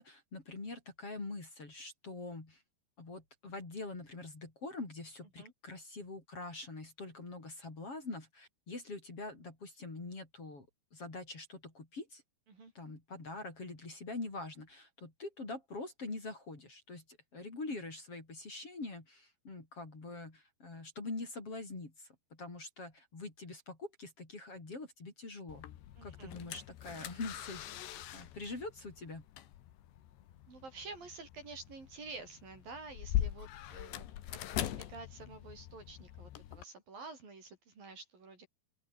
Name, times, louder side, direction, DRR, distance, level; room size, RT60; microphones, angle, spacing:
voice 1, 0.0-2.6 3.0-10.7 10.9-12.2 12.7-25.7 26.0-29.2, left 3 dB, 30° left, 6.2 m, -44 dB
sound 1, 25.5-36.6, left 12 dB, 80° left, 3.9 m, -42 dB
voice 2, 26.0-26.4 30.5-38.5, right 4 dB, 55° right, 8.4 m, -49 dB
open air
omnidirectional pair, 5.0 m